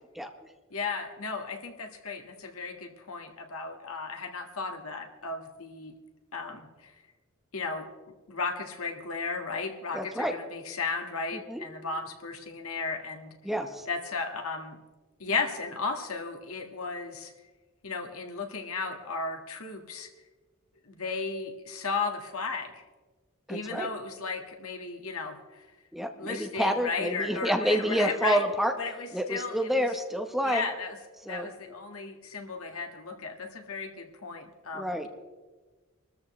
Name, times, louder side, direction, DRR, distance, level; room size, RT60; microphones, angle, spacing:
voice 1, 0.7-5.9 6.3-6.9 7.5-7.9 8.3-13.3 13.9-14.8 15.2-17.3 17.8-20.1 20.9-22.7 23.5-25.4 26.2-28.4 28.8-29.7 30.4-30.9 31.3-35.1, left 4 dB, 90° left, 3 dB, 1.7 m, -35 dB
voice 2, 9.9-10.4 11.3-11.6 13.4-13.9 23.5-23.9 25.9-28.7 29.1-30.7 31.2-31.5 34.7-35.1, equal, ahead, 4 dB, 0.9 m, -28 dB
25.5 x 13.5 x 3.2 m, 1.3 s
head